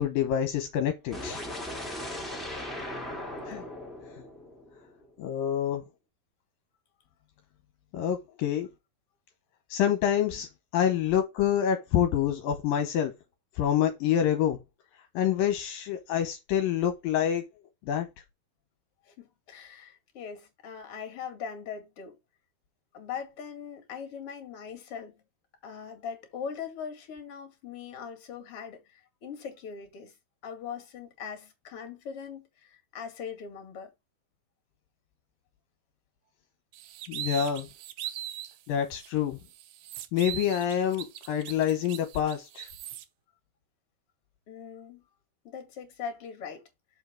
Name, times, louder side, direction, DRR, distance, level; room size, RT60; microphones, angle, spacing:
voice 1, 0.0-1.4 3.5-3.6 5.2-5.8 7.9-8.7 9.7-13.1 13.6-14.6 15.1-17.4 17.8-18.1 37.1-37.7 38.7-39.4 40.1-42.7, left 10 dB, 75° left, 2.6 m, -27 dB
sound 1, 1.1-5.1, left 1 dB, ahead, 1.7 m, -38 dB
voice 2, 19.0-22.2 22.9-25.1 25.6-30.1 30.4-33.9 44.5-45.0 45.4-46.6, left 7 dB, 45° left, 2.8 m, -41 dB
sound 2, 36.7-38.6 39.0-39.1 39.5-43.0, right 12 dB, 75° right, 1.8 m, -40 dB
7.1 x 5.4 x 3.7 m
omnidirectional pair, 4.2 m